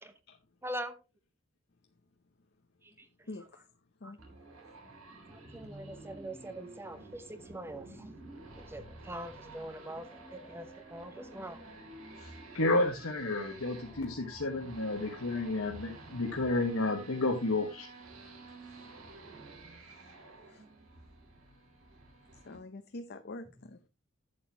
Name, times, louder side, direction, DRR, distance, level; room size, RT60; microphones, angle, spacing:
voice 1, 0.6-1.0 2.8-3.6 4.0-4.2 5.3-8.2 8.6-11.6, right 1 dB, 10° right, 0.9 m, -43 dB
sound 1, 4.2-22.6, right 2 dB, 85° right, 2.9 m, -51 dB
voice 2, 12.2-17.9, left 2 dB, 85° left, 1.4 m, -31 dB
voice 3, 22.5-23.8, left 2 dB, 50° left, 0.7 m, -44 dB
11.0 x 8.1 x 2.9 m
head